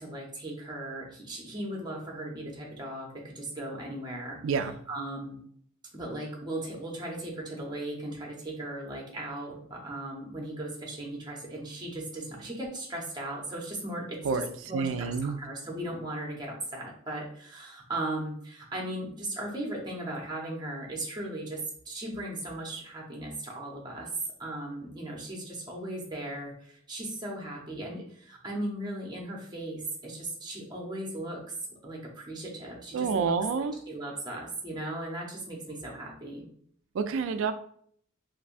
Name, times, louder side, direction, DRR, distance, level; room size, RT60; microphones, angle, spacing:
voice 1, 0.0-4.4 4.9-5.4 5.9-24.1 24.4-31.4 31.8-36.5, right 1 dB, 20° right, -1 dB, 0.7 m, -37 dB
voice 2, 4.4-4.7 14.2-15.4 32.9-33.7 36.9-37.5, right 5 dB, 70° right, 9 dB, 0.3 m, -28 dB
3.3 x 2.6 x 2.5 m, 0.63 s
head